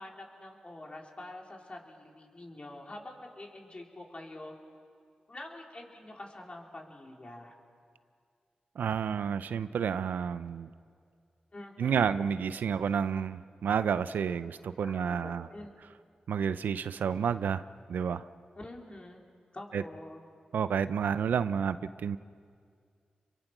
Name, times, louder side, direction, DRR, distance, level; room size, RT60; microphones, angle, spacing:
voice 1, 0.0-4.5 5.3-7.5 11.5-12.2 14.8-15.7 18.6-19.2 19.5-20.3, left 1 dB, 40° left, 0 dB, 4.2 m, -46 dB
voice 2, 8.8-10.7 11.8-15.4 16.3-17.6 17.9-18.2 19.7-19.8 20.5-22.2, right 7 dB, 85° right, 14 dB, 0.6 m, -30 dB
28.5 x 22.5 x 6.1 m, 2.2 s
cardioid pair, 40°, 3 cm